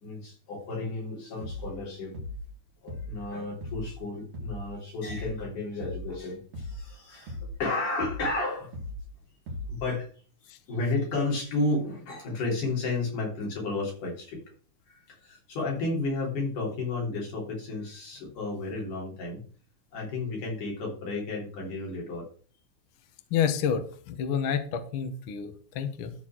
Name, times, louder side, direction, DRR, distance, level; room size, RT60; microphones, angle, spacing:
voice 1, 0.0-2.1 2.8-8.7 9.7-10.1 10.4-14.4 14.9-19.4 19.9-22.3, left 2 dB, 80° left, -2 dB, 5.1 m, -32 dB
sound 1, 1.4-1.8 2.1-2.5 2.9-3.3 3.6-4.0 4.3-4.7 5.1-5.4 5.8-6.2 6.5-6.9 7.3-7.6 8.0-8.4 8.7-9.1 9.5-9.9, left 1 dB, 60° right, 2.7 m, -38 dB
voice 2, 23.3-26.1, left 7 dB, 65° left, 9 dB, 1.4 m, -29 dB
12.5 x 4.2 x 6.0 m, 0.43 s
omnidirectional pair, 3.6 m